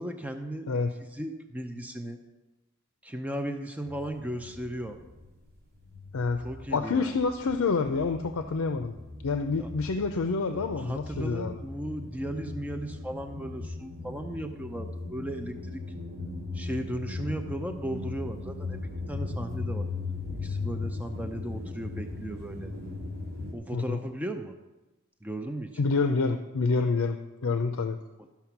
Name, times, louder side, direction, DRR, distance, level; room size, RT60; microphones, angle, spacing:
voice 1, 0.0-0.7 1.1-2.2 3.0-5.0 6.4-7.2 9.6-9.7 10.5-15.8 16.5-18.8 19.1-19.9 20.4-22.7 23.5-24.6 25.2-25.7, right 1 dB, 5° right, 5 dB, 0.5 m, -36 dB
sound 1, 3.8-5.5 5.8-23.5, left 3 dB, 50° right, 2.9 m, -38 dB
voice 2, 6.1-6.4 6.7-8.9 9.2-11.6 23.7-24.0 25.8-28.0, left 4 dB, 80° left, 8 dB, 0.5 m, -27 dB
12.5 x 5.8 x 5.9 m, 1.1 s
head